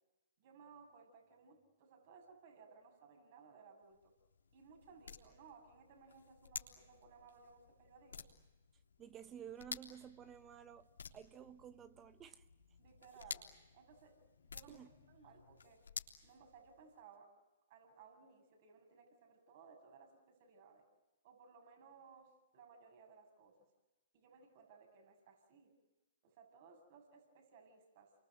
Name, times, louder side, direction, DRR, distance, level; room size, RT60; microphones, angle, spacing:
voice 1, 0.4-4.1 4.5-8.2 12.8-13.4 13.7-15.8 16.2-17.3 17.7-20.9 21.2-23.7 24.1-25.7 26.2-28.1, right 5 dB, 45° right, 5 dB, 7.3 m, -61 dB
sound 1, 3.8-17.0, left 5 dB, 90° left, 3.4 m, -53 dB
voice 2, 9.0-10.9 11.1-12.4 14.7-14.9, right 9 dB, 20° right, 11 dB, 1.1 m, -53 dB
29.5 x 24.0 x 8.0 m, 1.1 s
hypercardioid pair, 135°, 0 cm